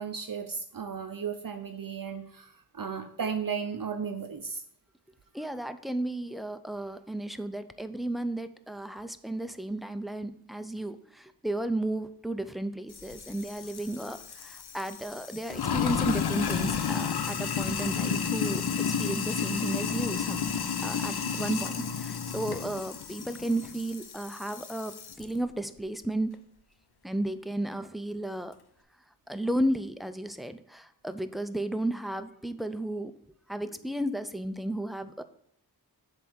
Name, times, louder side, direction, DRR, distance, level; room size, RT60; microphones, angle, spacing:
voice 1, 0.0-4.6 21.2-21.4, right 6 dB, 55° right, 6 dB, 0.6 m, -35 dB
voice 2, 5.3-20.5 20.8-26.3 27.0-28.5 29.3-33.1 33.5-35.2, right 1 dB, ahead, 9 dB, 0.5 m, -33 dB
Sink (filling or washing), 12.9-25.2, left 7 dB, 70° left, 0.6 m, -32 dB
7.8 x 3.5 x 6.2 m, 0.69 s
wide cardioid pair, 60°, 40 cm